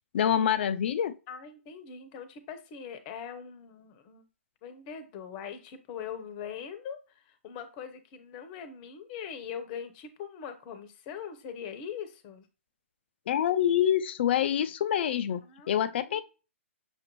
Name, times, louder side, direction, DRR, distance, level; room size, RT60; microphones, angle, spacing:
voice 1, 0.1-1.1 13.3-16.2, left 10 dB, 50° left, 0.4 m, -26 dB
voice 2, 1.3-4.2 4.6-12.5 15.4-16.2, left 7 dB, 30° left, 0.8 m, -42 dB
6.4 x 2.6 x 3.0 m
hypercardioid pair, 140°, 7 cm